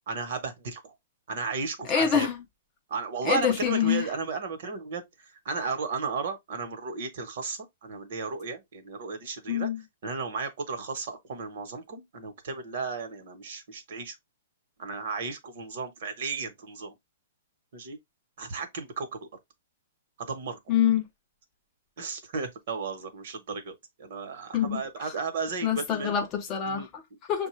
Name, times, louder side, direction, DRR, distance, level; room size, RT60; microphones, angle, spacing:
voice 1, 0.1-0.9 1.3-2.3 2.9-9.7 10.0-14.2 14.8-17.0 17.7-18.0 18.4-19.3 20.2-20.6 22.0-26.1 26.6-26.9, right 4 dB, 45° right, 1.0 m, -34 dB
voice 2, 1.9-2.4 3.2-4.1 9.5-9.8 20.7-21.0 24.5-25.1 25.6-27.5, left 9 dB, 20° left, 0.4 m, -26 dB
6.3 x 2.2 x 3.1 m
hypercardioid pair, 175°, 0 cm